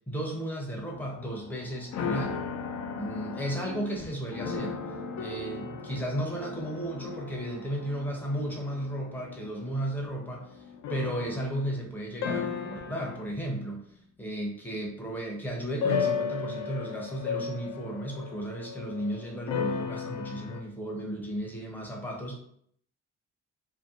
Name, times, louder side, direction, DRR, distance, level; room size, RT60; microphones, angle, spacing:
voice 1, 0.1-2.4 2.9-4.7 5.2-10.6 10.9-13.8 14.2-22.4, right 1 dB, 5° left, -1 dB, 0.7 m, -34 dB
sound 1, 0.9-11.9 12.2-13.4 15.8-20.6, left 6 dB, 65° left, 0.4 m, -35 dB
2.6 x 2.1 x 2.4 m, 0.67 s
cardioid pair, 90°, 30 cm